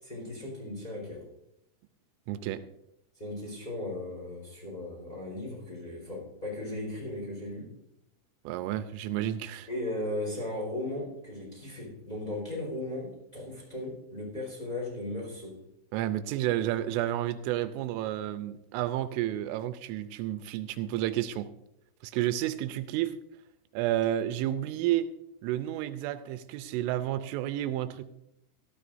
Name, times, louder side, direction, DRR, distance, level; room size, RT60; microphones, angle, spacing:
voice 1, 0.0-1.3 3.2-7.7 9.7-15.6, left 1 dB, 10° left, -3 dB, 4.0 m, -37 dB
voice 2, 2.3-2.6 8.5-9.7 15.9-21.5 22.0-23.1 23.7-25.1 25.4-28.0, right 13 dB, 85° right, 11 dB, 3.1 m, -31 dB
17.5 x 13.0 x 2.6 m, 0.82 s
omnidirectional pair, 5.6 m